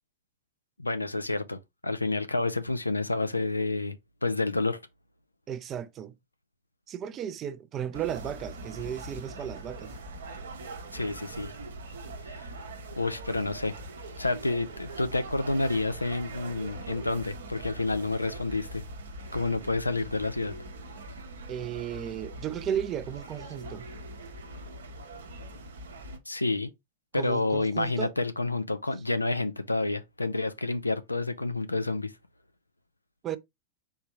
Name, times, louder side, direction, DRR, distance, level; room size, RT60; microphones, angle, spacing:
voice 1, 0.8-4.0 4.2-4.8 10.9-11.5 12.3-12.5 13.0-13.7 14.2-18.8 19.3-20.5 26.3-26.7 27.1-32.1, left 2 dB, 85° left, 0.5 m, -29 dB
voice 2, 5.5-6.2 6.9-9.9 21.5-23.9 27.1-28.1 33.2-33.4, right 9 dB, 30° right, 0.5 m, -34 dB
sound 1, 7.9-26.2, right 2 dB, 65° right, 1.0 m, -42 dB
4.5 x 3.4 x 2.9 m
figure-of-eight pair, 90°, 0 cm